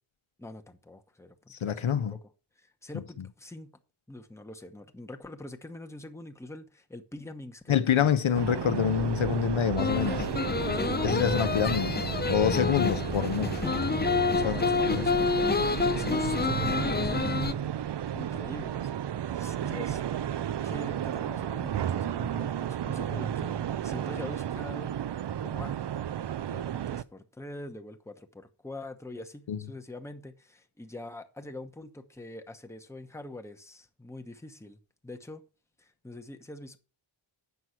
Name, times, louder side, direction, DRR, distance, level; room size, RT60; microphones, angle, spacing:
voice 1, 0.4-2.2 2.6-3.8 4.1-8.9 10.7-11.9 13.5-13.8 14.2-17.5 18.1-20.0 20.6-23.6 23.8-24.9 25.4-25.7 26.5-35.4 35.8-36.8, left 1 dB, 5° left, 0.9 m, -44 dB
voice 2, 1.5-2.2 2.9-3.0 7.7-10.3 11.0-12.0 12.3-13.7 14.4-15.1 29.5-29.6, left 8 dB, 70° left, 0.9 m, -27 dB
sound 1, 8.3-27.0, right 10 dB, 55° right, 0.5 m, -33 dB
sound 2, 8.9-15.5, right 4 dB, 80° right, 3.4 m, -45 dB
sound 3, 9.8-17.5, left 4 dB, 20° left, 0.5 m, -28 dB
8.1 x 6.2 x 5.7 m
wide cardioid pair, 100°, 49 cm